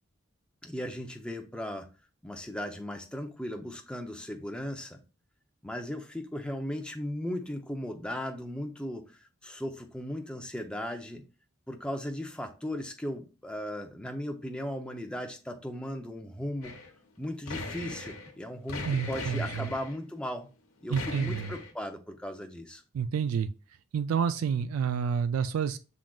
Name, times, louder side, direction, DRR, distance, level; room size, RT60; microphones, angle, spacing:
voice 1, 0.6-1.9 2.2-5.0 5.6-9.0 9.4-11.2 11.7-16.7 17.2-20.5 20.8-22.8, left 1 dB, 5° left, 0.5 m, -37 dB
sound 1, 16.6-16.9 17.2-18.3 18.7-20.0 20.9-21.7, left 3 dB, 90° left, 0.9 m, -39 dB
voice 2, 18.9-19.7 20.9-21.5 22.9-23.5 23.9-25.8, right 7 dB, 80° right, 0.3 m, -29 dB
6.1 x 3.7 x 2.3 m
head